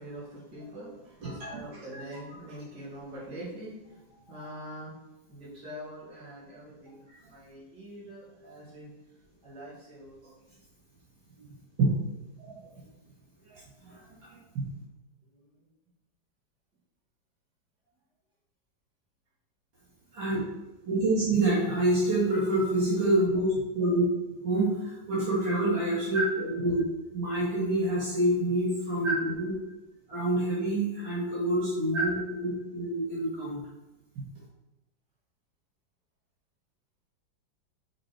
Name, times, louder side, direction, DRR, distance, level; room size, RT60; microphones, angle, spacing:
voice 1, 0.0-4.0 4.3-4.9 5.3-7.0 7.2-8.9 9.4-10.4 15.3-15.4, right 1 dB, 60° right, -8 dB, 3.1 m, -44 dB
voice 2, 1.2-1.5 1.9-2.0 7.1-7.2 11.8-11.9 12.4-12.6 13.4-14.0 14.5-14.7 20.1-20.4 20.9-24.0 24.3-26.8 27.1-29.5 30.1-33.6, right 1 dB, 75° right, -9 dB, 2.8 m, -27 dB
6.9 x 4.4 x 4.6 m, 1.0 s
omnidirectional pair, 2.1 m